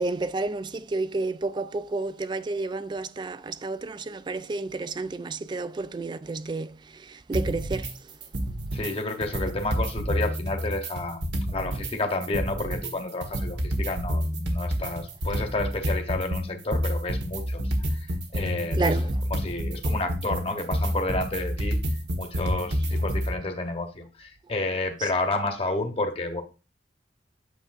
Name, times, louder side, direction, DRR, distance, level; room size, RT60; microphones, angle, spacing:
voice 1, 0.0-7.9 18.7-19.1 25.0-25.1, right 3 dB, 25° right, 0.3 m, -31 dB
sound 1, 7.3-7.9 8.2-8.9 9.2-11.9 12.2-23.3, equal, 85° right, 1.2 m, -28 dB
voice 2, 8.7-18.1 18.3-21.8 22.1-26.4, left 2 dB, 35° left, 0.9 m, -30 dB
8.3 x 6.6 x 2.5 m
head